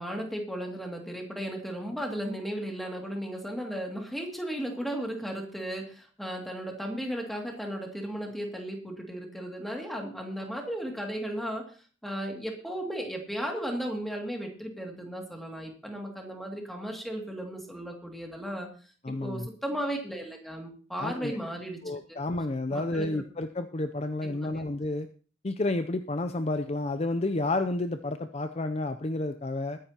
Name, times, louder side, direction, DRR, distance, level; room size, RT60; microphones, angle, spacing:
voice 1, 0.0-11.7 12.0-18.7 19.2-21.8 22.1-22.2 22.7-23.2 24.2-24.6, equal, ahead, 1 dB, 2.3 m, -35 dB
voice 2, 19.0-19.5 21.0-21.4 21.8-25.1 25.4-29.8, left 2 dB, 30° left, 9 dB, 0.5 m, -30 dB
21.5 x 10.0 x 2.9 m, 0.39 s
head